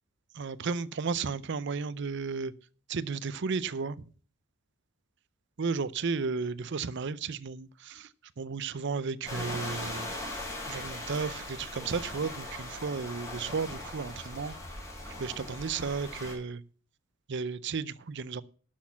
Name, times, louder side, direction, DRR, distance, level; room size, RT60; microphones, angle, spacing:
voice 1, 0.4-2.5 2.9-4.0 5.6-8.1 8.4-10.1 10.7-14.5 15.2-16.6 17.3-18.4, right 5 dB, 60° right, 0.5 m, -33 dB
sound 1, 9.3-16.3, left 1 dB, 15° left, 5.1 m, -39 dB
11.5 x 6.4 x 7.2 m
head